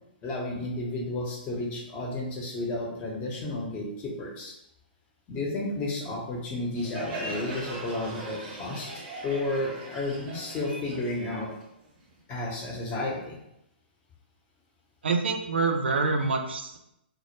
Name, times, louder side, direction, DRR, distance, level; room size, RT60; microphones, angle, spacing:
voice 1, 0.2-4.5 5.3-8.9 9.2-11.5 12.3-13.4, left 2 dB, 25° left, -1 dB, 0.6 m, -32 dB
Crowd, 6.8-12.2, right 2 dB, 30° right, 0.6 m, -40 dB
voice 2, 15.0-16.8, right 4 dB, 85° right, 5 dB, 0.3 m, -26 dB
2.1 x 2.0 x 2.9 m, 0.81 s
hypercardioid pair, 130°, 6 cm